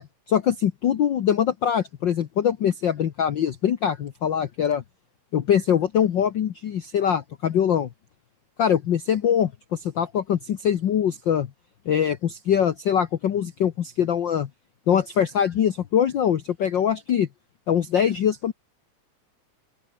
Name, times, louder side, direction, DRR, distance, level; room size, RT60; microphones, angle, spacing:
voice 1, 0.0-4.8 5.3-7.9 8.6-11.5 11.9-14.5 14.9-17.3 17.7-18.5, left 9 dB, 65° left, 1.2 m, -23 dB
open air
omnidirectional pair, 3.4 m